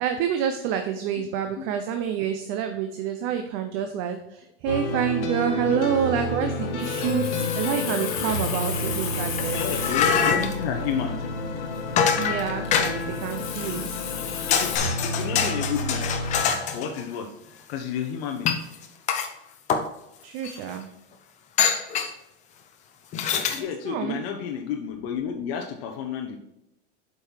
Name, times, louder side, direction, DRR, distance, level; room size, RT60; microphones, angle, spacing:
voice 1, 0.0-9.6 10.2-10.5 12.2-13.9 20.2-20.9 23.5-24.2, right 8 dB, 35° right, 6 dB, 0.6 m, -28 dB
sound 1, 4.7-16.4, left 1 dB, 75° left, 1.8 m, -30 dB
Water tap faucet, 6.6-14.8, left 7 dB, 35° left, 1.3 m, -35 dB
sound 2, 9.4-10.6 12.0-13.2 14.1-14.2 14.5-17.0 18.5-19.3 19.7-19.9 20.4-20.5 21.6-22.1 23.1-23.6, left 7 dB, 20° left, 0.6 m, -24 dB
voice 2, 9.5-11.3 14.5-14.7 15.0-16.0 16.7-17.3 17.7-18.5 23.5-26.4, left 8 dB, 55° left, 2 dB, 1.0 m, -31 dB
8.0 x 5.5 x 4.6 m, 0.85 s
supercardioid pair, 160°, 35 cm